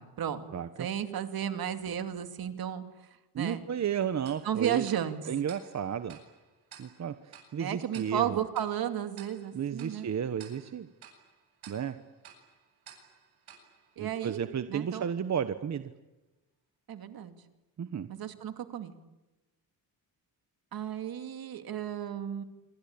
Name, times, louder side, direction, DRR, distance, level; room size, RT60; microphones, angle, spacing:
voice 1, 0.0-0.5 0.8-2.8 3.4-3.7 4.4-5.2 7.6-10.1 14.0-14.4 14.7-15.0 16.9-17.3 18.1-18.9 20.7-22.4, right 9 dB, 70° right, 8 dB, 2.6 m, -33 dB
voice 2, 3.3-4.9 5.3-6.2 6.8-8.4 9.5-10.9 11.7-11.9 14.0-15.9 17.8-18.1, right 8 dB, 45° right, 10 dB, 1.2 m, -33 dB
Tick-tock, 4.3-14.7, right 8 dB, 85° right, 7.9 m, -56 dB
26.5 x 25.0 x 8.8 m, 1.0 s
cardioid pair, 130°, 37 cm